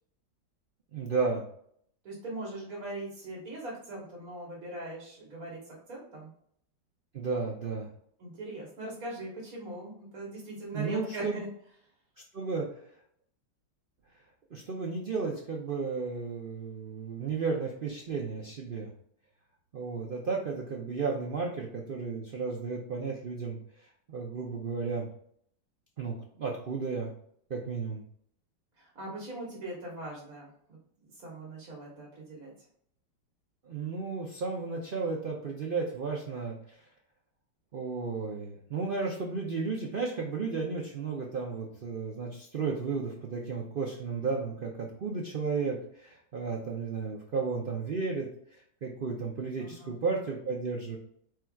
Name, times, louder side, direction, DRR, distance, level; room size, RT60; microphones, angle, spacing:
voice 1, 0.9-1.4 7.1-7.9 10.7-11.4 12.3-12.7 14.5-18.9 19.7-25.1 26.0-27.1 27.5-28.0 33.7-36.8 37.7-51.0, right 4 dB, 80° right, 0 dB, 0.4 m, -33 dB
voice 2, 2.0-6.3 8.2-11.5 28.8-30.8 31.1-32.5 49.6-50.0, right 1 dB, 55° right, -3 dB, 1.7 m, -41 dB
4.9 x 4.4 x 2.3 m, 0.66 s
omnidirectional pair, 1.9 m